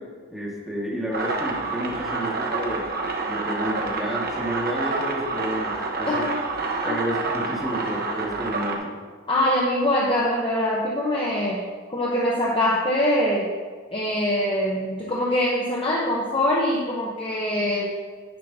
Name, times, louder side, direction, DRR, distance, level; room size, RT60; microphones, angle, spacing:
voice 1, 0.0-2.9 3.3-6.3 6.8-8.9, equal, ahead, -5 dB, 1.8 m, -31 dB
sound 1, 1.1-8.8, right 3 dB, 50° right, 1.1 m, -28 dB
voice 2, 9.3-13.5 13.9-18.0, left 1 dB, 25° left, -4 dB, 0.9 m, -23 dB
10.0 x 9.7 x 2.8 m, 1.5 s
head